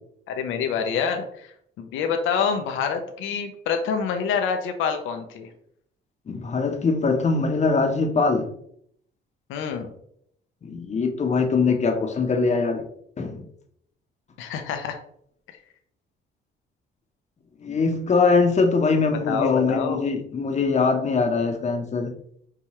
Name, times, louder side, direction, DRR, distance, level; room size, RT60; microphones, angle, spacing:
voice 1, 0.3-5.5 9.5-9.9 14.4-15.0 15.5-15.6 19.3-20.0, left 6 dB, 85° left, 0.5 m, -27 dB
voice 2, 6.3-8.5 10.6-12.8 13.2-13.4 17.6-22.1, left 4 dB, 35° left, 0.7 m, -22 dB
4.7 x 2.3 x 2.8 m
cardioid pair, 90°, 20 cm